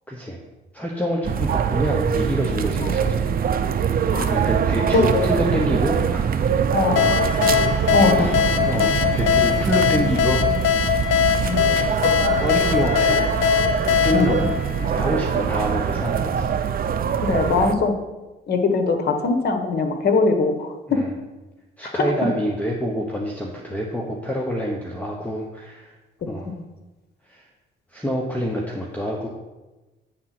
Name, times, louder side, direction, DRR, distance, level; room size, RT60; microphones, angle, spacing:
voice 1, 0.1-0.4 0.7-3.3 4.3-6.5 8.2-8.4 8.7-10.5 11.7-11.9 12.4-13.3 14.0-16.5 20.9-21.1 21.8-25.9 26.3-26.6 27.3-27.4 27.9-29.3, equal, 5° left, -1 dB, 1.0 m, -27 dB
sound 1, 1.2-17.7, right 7 dB, 45° right, 0.5 m, -23 dB
voice 2, 4.9-5.3 6.7-7.0 7.9-8.3 11.4-11.6 14.1-14.5 17.2-17.9 18.5-21.0 21.8-21.9, left 3 dB, 55° left, 5 dB, 1.2 m, -21 dB
sound 2, 7.0-15.4, left 9 dB, 85° left, 0.6 m, -21 dB
8.8 x 3.7 x 6.0 m, 1.1 s
cardioid pair, 90°, 20 cm